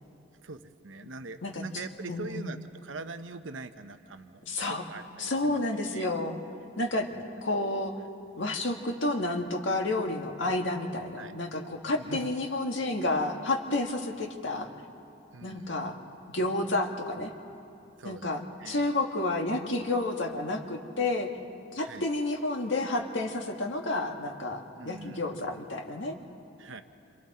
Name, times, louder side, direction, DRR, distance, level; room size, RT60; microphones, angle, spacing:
voice 1, 0.4-5.6 5.9-6.1 11.2-11.4 12.0-12.3 15.3-15.8 18.0-18.3 18.6-18.8 21.8-22.1 24.8-25.3 26.6-26.8, right 3 dB, 80° right, 9 dB, 0.8 m, -43 dB
voice 2, 2.1-2.5 4.5-4.8 5.2-6.4 6.8-7.1 7.4-8.0 8.4-14.7 15.4-16.0 16.3-17.3 18.0-21.3 21.7-26.2, left 2 dB, 70° left, 3 dB, 1.8 m, -30 dB
28.5 x 26.0 x 4.3 m, 2.8 s
head